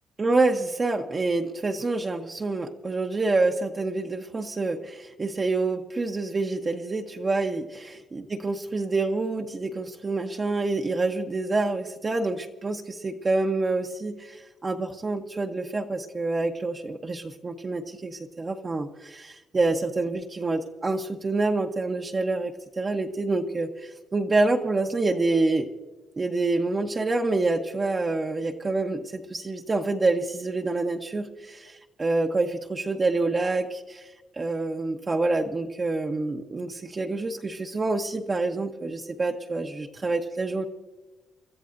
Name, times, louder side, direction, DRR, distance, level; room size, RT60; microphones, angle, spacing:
voice 1, 0.2-25.7 26.2-34.1 34.4-40.7, right 3 dB, 30° right, 2 dB, 0.9 m, -27 dB
29.5 x 13.5 x 2.6 m, 1.2 s
cardioid pair, 90°, 0 cm